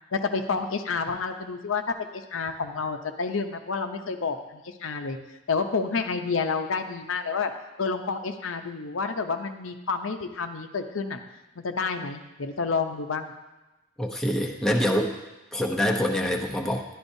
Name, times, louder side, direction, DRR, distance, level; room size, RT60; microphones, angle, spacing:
voice 1, 0.1-5.2 5.5-7.5 7.8-11.2 11.6-13.3, left 4 dB, 90° left, 6 dB, 0.7 m, -29 dB
voice 2, 14.0-15.1 15.5-16.8, equal, 5° left, 0 dB, 0.7 m, -25 dB
11.5 x 11.0 x 2.7 m, 1.1 s
head